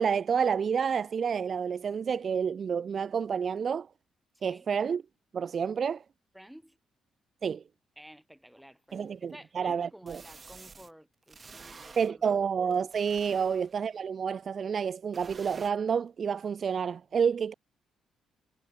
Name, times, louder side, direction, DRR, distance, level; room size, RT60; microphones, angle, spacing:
voice 1, 0.0-3.9 4.4-5.0 5.3-6.0 7.4-7.6 8.9-10.2 12.0-17.5, right 6 dB, 50° right, 0.3 m, -29 dB
voice 2, 4.3-4.7 6.3-6.8 8.0-12.4, equal, 5° right, 8.0 m, -52 dB
sound 1, 8.9-9.0 10.1-10.9 11.3-12.1 12.7-13.8 15.1-15.7, right 4 dB, 35° right, 3.6 m, -50 dB
cardioid pair, 90°, 0 cm